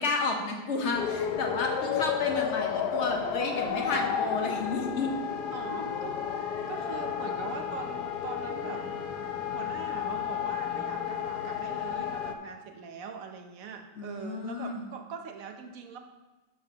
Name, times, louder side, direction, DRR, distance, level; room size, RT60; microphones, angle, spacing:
voice 1, 0.0-5.1 14.0-14.9, left 3 dB, 45° left, 2 dB, 1.0 m, -31 dB
sound 1, 0.9-12.3, left 8 dB, 65° left, 1.0 m, -32 dB
voice 2, 5.5-8.9 9.4-16.0, right 6 dB, 65° right, 5 dB, 0.9 m, -42 dB
12.5 x 7.1 x 2.9 m, 1.2 s
omnidirectional pair, 2.2 m